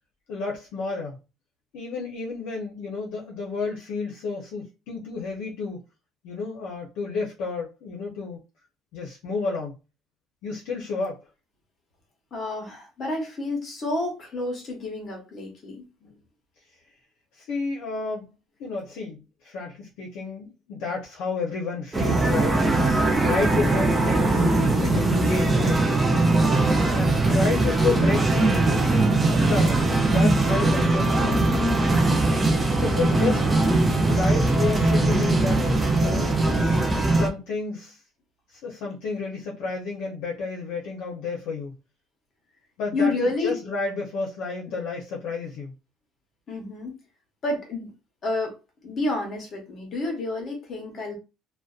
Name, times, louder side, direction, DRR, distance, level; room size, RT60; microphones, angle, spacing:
voice 1, 0.3-1.2 1.7-5.8 6.2-8.4 8.9-9.8 10.4-11.2 16.0-16.1 17.4-18.3 18.6-22.6 23.2-24.5 24.8-26.1 26.9-28.7 29.1-31.5 32.8-33.4 34.1-35.6 36.0-36.4 37.1-38.0 38.5-41.8 42.8-45.7, left 4 dB, 70° left, 0.6 m, -31 dB
voice 2, 12.3-15.9 36.3-37.1 42.9-43.6 46.5-47.0 47.4-47.9 48.2-48.6 48.8-51.2, left 2 dB, 35° left, 0.9 m, -30 dB
sound 1, 21.9-37.3, right 2 dB, 15° right, 0.4 m, -21 dB
2.5 x 2.1 x 2.4 m
cardioid pair, 150°, 0 cm